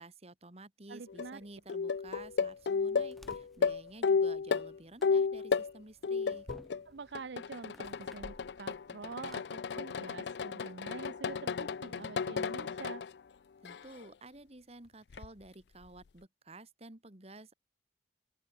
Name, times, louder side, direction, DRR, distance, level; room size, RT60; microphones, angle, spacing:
voice 1, 0.0-6.5 13.6-17.5, right 2 dB, 35° right, 2.2 m, -52 dB
voice 2, 0.9-1.4 6.9-13.0, right 4 dB, 80° right, 0.6 m, -46 dB
sound 1, 1.1-1.3 1.7-5.7 6.0-6.8 7.1-13.1 13.6-14.1 15.1-15.3, left 5 dB, 75° left, 0.4 m, -33 dB
sound 2, 2.1-9.4, equal, ahead, 4.7 m, -57 dB
open air
head